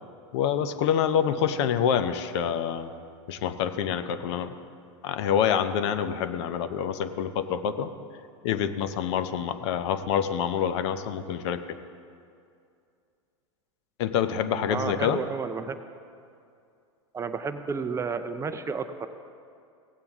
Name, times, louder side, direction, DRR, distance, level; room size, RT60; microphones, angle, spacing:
voice 1, 0.3-2.9 3.3-4.6 5.0-7.9 8.4-11.8 14.0-15.2, left 8 dB, 60° left, 11 dB, 0.7 m, -27 dB
voice 2, 14.7-15.8 17.1-19.1, right 5 dB, 20° right, 9 dB, 0.5 m, -31 dB
16.5 x 8.8 x 3.6 m, 2.4 s
hypercardioid pair, 105°, 16 cm